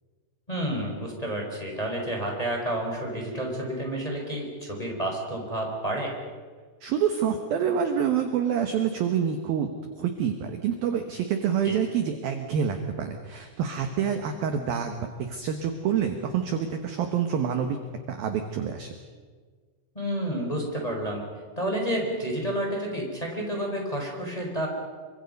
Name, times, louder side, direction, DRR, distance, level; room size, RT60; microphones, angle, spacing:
voice 1, 0.5-6.1 11.6-11.8 19.9-21.2 21.6-24.7, right 1 dB, 10° left, -1 dB, 3.9 m, -30 dB
voice 2, 6.8-9.7 10.0-17.8 18.1-18.9, right 8 dB, 70° right, 6 dB, 2.4 m, -27 dB
27.5 x 24.0 x 5.4 m, 1.5 s
omnidirectional pair, 5.7 m